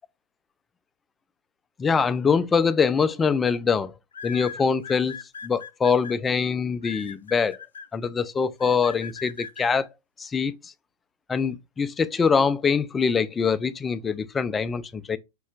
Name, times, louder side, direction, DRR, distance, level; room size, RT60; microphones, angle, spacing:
voice 1, 1.8-3.9 4.2-5.2 5.4-7.6 7.9-9.9 10.2-10.7 11.3-15.2, left 5 dB, 20° left, 0.4 m, -24 dB
sound 1, 2.6-2.9 4.1-6.1 6.8-7.9 8.6-9.7, left 6 dB, 75° left, 0.5 m, -39 dB
4.8 x 4.2 x 2.4 m
figure-of-eight pair, 95°, 0 cm